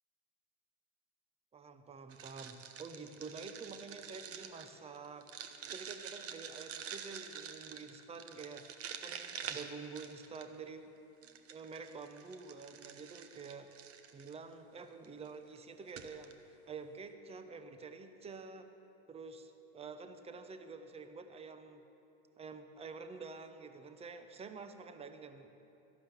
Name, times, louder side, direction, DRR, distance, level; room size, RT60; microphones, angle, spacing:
voice 1, 1.5-5.3 5.7-8.6 9.0-10.9 11.2-13.7 14.1-18.7 19.1-21.8 22.4-25.5, right 4 dB, 15° right, 9 dB, 0.8 m, -48 dB
sound 1, 2.1-10.7 11.2-14.4 15.0-15.3 15.6-15.7 15.9-16.3, right 8 dB, 40° right, 1.0 m, -47 dB
13.0 x 11.5 x 7.1 m, 2.8 s
supercardioid pair, 115°, 36 cm